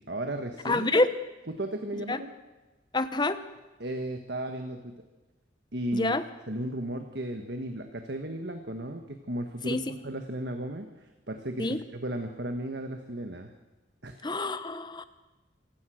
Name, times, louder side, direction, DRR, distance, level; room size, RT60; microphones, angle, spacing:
voice 1, 0.1-0.9 1.5-2.3 3.8-4.9 5.7-6.2 6.5-13.5 14.0-14.2, right 1 dB, 60° right, 6 dB, 1.5 m, -35 dB
voice 2, 0.6-1.1 1.9-2.2 2.9-3.4 5.9-6.2 9.7-9.8 11.6-11.8 14.2-15.0, left 2 dB, 25° left, 12 dB, 1.0 m, -27 dB
26.0 x 16.5 x 6.4 m, 1.1 s
head